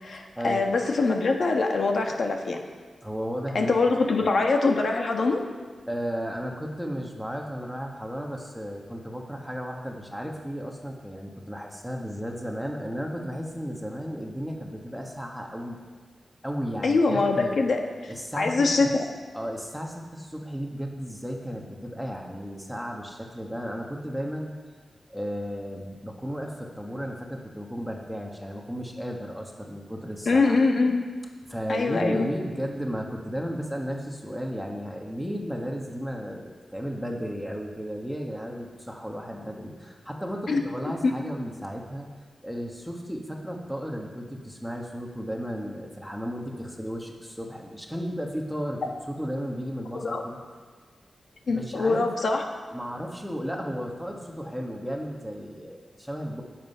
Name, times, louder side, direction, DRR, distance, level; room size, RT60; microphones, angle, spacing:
voice 1, 0.0-2.6 3.5-5.4 16.8-17.8 18.4-18.9 30.3-31.1 31.7-32.3 40.5-40.6 41.0-41.1 49.9-50.2 51.5-52.4, left 3 dB, 60° left, 3 dB, 1.4 m, -23 dB
voice 2, 3.0-3.7 4.2-4.3 5.9-15.8 16.4-17.6 18.1-18.9 19.3-24.5 25.1-30.6 31.5-42.1 42.4-50.4 51.5-52.1 52.7-56.4, equal, ahead, 0 dB, 1.5 m, -34 dB
19.5 x 7.6 x 5.6 m, 1.4 s
wide cardioid pair, 160°, 0 cm